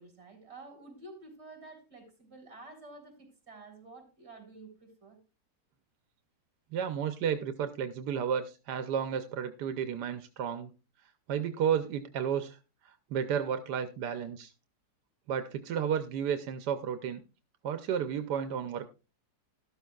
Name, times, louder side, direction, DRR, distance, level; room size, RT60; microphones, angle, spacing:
voice 1, 0.0-5.2, right 2 dB, 40° right, 4.0 m, -50 dB
voice 2, 6.7-10.7 11.3-12.6 12.8-14.5 15.3-17.2 17.6-18.9, right 8 dB, 85° right, 1.3 m, -32 dB
13.0 x 12.5 x 2.3 m
omnidirectional pair, 1.7 m